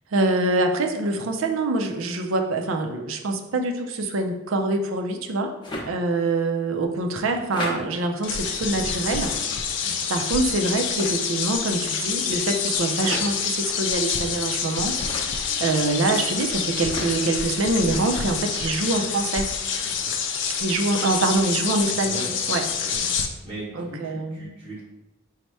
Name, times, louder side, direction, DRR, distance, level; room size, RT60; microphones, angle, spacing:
voice 1, 0.1-5.5 5.8-9.3 9.7-15.0 15.2-19.5 20.6-22.6 23.7-24.4, right 2 dB, 90° right, 4 dB, 0.5 m, -25 dB
sound 1, 5.6-5.9 7.5-7.7 9.2-9.5 10.9-11.1 13.0-13.2 14.9-15.3 16.8-17.1, left 1 dB, 25° left, 0.6 m, -32 dB
sound 2, 8.2-23.3, left 6 dB, 65° left, 0.4 m, -27 dB
voice 2, 19.8-20.2 21.8-22.3 22.6-24.8, right 1 dB, 30° right, -8 dB, 0.9 m, -39 dB
4.1 x 2.1 x 4.5 m, 0.98 s
head